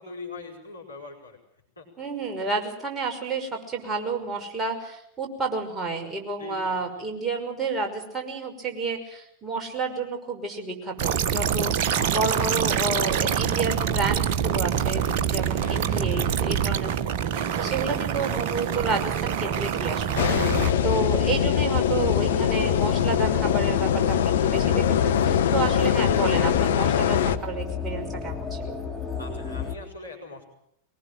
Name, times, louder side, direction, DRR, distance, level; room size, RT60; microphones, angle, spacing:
voice 1, 0.0-1.4 1.8-1.9 6.4-6.9 12.0-12.7 15.6-16.2 20.5-20.8 21.2-21.3 25.5-25.9 29.2-30.5, left 3 dB, 80° left, 0 dB, 5.0 m, -42 dB
voice 2, 2.0-11.7 12.1-16.9 17.5-20.3 20.8-28.8, right 3 dB, 15° right, 1 dB, 5.8 m, -30 dB
sound 1, 11.0-20.7, right 8 dB, 45° right, 1.4 m, -25 dB
sound 2, 20.2-27.4, left 9 dB, 60° left, 1.2 m, -22 dB
sound 3, 20.5-29.8, left 6 dB, 10° left, 3.4 m, -34 dB
23.0 x 20.0 x 7.7 m, 0.76 s
figure-of-eight pair, 90°, 0 cm